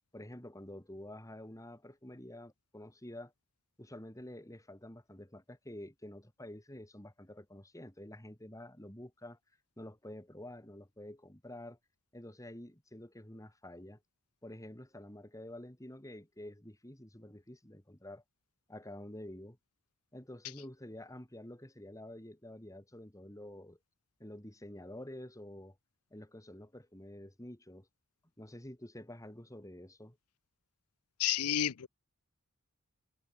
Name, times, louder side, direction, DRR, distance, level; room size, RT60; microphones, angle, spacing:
voice 1, 0.1-3.3 3.8-9.4 9.8-11.8 12.1-14.0 14.4-18.2 18.7-19.6 20.1-23.8 24.2-25.8 26.1-27.9 28.4-30.2, left 1 dB, 15° left, 2.9 m, -49 dB
voice 2, 31.2-31.9, left 11 dB, 80° left, 0.6 m, -30 dB
head